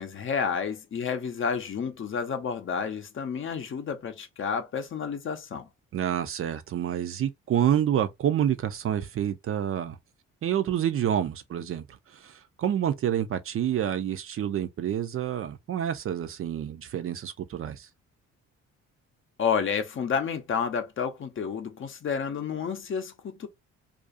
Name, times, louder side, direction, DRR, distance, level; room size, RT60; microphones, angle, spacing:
voice 1, 0.0-5.7 19.4-23.5, left 6 dB, 45° left, 0.6 m, -30 dB
voice 2, 5.9-10.0 10.4-17.9, right 10 dB, 45° right, 0.4 m, -28 dB
2.4 x 2.3 x 2.5 m
cardioid pair, 90°, 30 cm